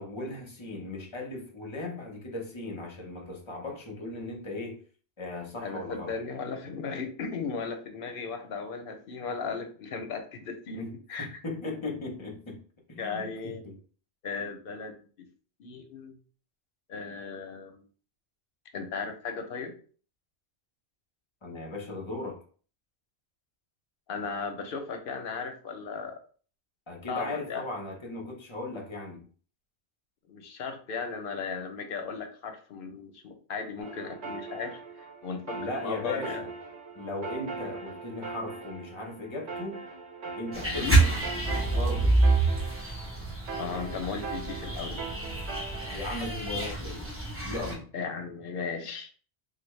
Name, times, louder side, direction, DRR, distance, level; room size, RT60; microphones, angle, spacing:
voice 1, 0.0-4.8 5.2-6.1 10.7-12.6 12.9-13.8 21.4-22.4 26.9-29.3 35.5-36.5 36.9-39.9 40.4-41.1 41.7-42.2 45.9-47.1 47.5-47.9, left 2 dB, 30° left, 0 dB, 0.8 m, -37 dB
voice 2, 5.6-10.8 11.1-11.4 13.0-13.6 14.2-15.3 15.6-16.2 16.9-17.8 18.7-19.8 24.1-26.2 27.1-27.6 30.3-36.4 40.7-41.0 43.6-45.0 47.9-49.1, left 5 dB, 60° left, 5 dB, 0.8 m, -36 dB
sound 1, 33.8-46.0, right 4 dB, 85° right, 1.0 m, -41 dB
sound 2, 40.5-47.7, right 2 dB, 15° right, 0.8 m, -27 dB
3.4 x 2.3 x 3.1 m, 0.41 s
omnidirectional pair, 1.1 m